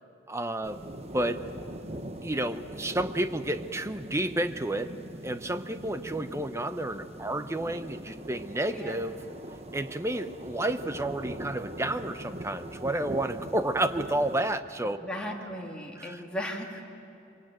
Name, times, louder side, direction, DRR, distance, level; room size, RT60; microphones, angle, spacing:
voice 1, 0.3-0.8 1.1-1.4 2.2-4.9 5.2-9.2 9.7-15.0 16.0-16.2, right 1 dB, 15° right, 9 dB, 0.8 m, -31 dB
sound 1, 0.6-14.5, right 1 dB, 30° right, 1.2 m, -41 dB
voice 2, 15.0-16.8, equal, 5° left, -2 dB, 2.4 m, -36 dB
24.0 x 24.0 x 9.1 m, 2.8 s
head